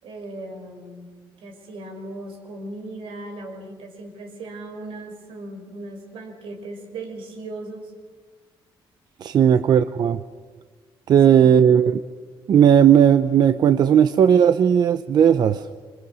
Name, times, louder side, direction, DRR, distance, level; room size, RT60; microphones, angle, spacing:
voice 1, 0.0-7.9 11.4-11.6, right 2 dB, 80° right, 3 dB, 5.4 m, -37 dB
voice 2, 9.2-10.2 11.1-12.0 12.5-15.7, right 8 dB, 50° right, 11 dB, 0.7 m, -16 dB
26.5 x 25.5 x 6.3 m, 1.5 s
cardioid pair, 170°, 9 cm